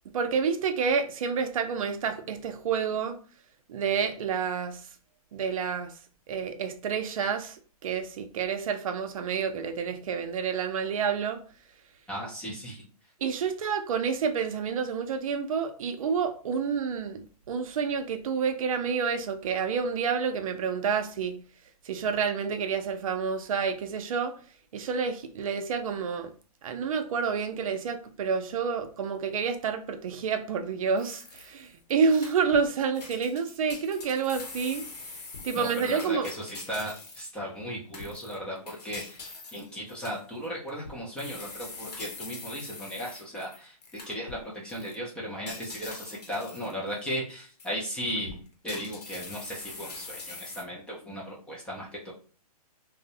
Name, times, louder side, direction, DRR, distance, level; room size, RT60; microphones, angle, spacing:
voice 1, 0.1-3.2 3.7-4.8 5.3-5.9 6.3-11.4 13.2-21.4 21.9-24.3 24.7-26.3 26.6-34.8 35.4-36.3, right 6 dB, 60° right, 0.5 m, -29 dB
voice 2, 12.1-12.8 35.5-39.3 39.5-52.1, equal, 5° left, 0.3 m, -36 dB
sound 1, 31.0-31.7 32.1-32.7 32.9-37.4 37.9-44.4 44.7-44.9 45.5-47.2 47.6-47.7 48.2-50.6, left 3 dB, 85° left, 0.9 m, -43 dB
2.5 x 2.0 x 2.7 m
hypercardioid pair, 140°, 20 cm